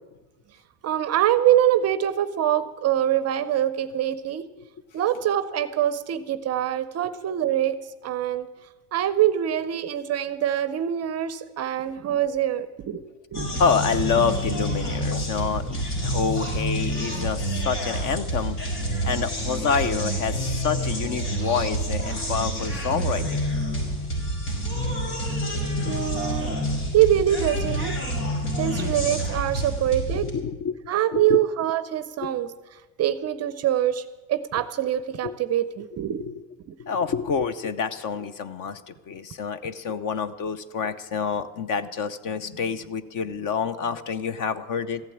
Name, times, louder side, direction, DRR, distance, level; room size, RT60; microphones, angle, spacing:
voice 1, 0.8-4.5 4.9-7.7 8.0-8.5 8.9-13.0 13.3-13.5 25.8-26.6 26.9-28.0 28.6-30.3 30.9-32.5 33.0-34.0 34.3-36.2 36.7-36.8, right 11 dB, 35° right, 14 dB, 0.5 m, -24 dB
sound 1, 13.3-30.3, equal, 75° left, 5.5 m, -28 dB
voice 2, 13.6-18.6 19.0-23.4 28.6-29.0 30.1-31.4 32.2-32.3 34.6-34.7 35.2-35.4 36.2-36.4 36.8-45.0, left 6 dB, 40° left, 15 dB, 0.8 m, -28 dB
14.5 x 9.0 x 8.6 m, 1.2 s
supercardioid pair, 120°, 49 cm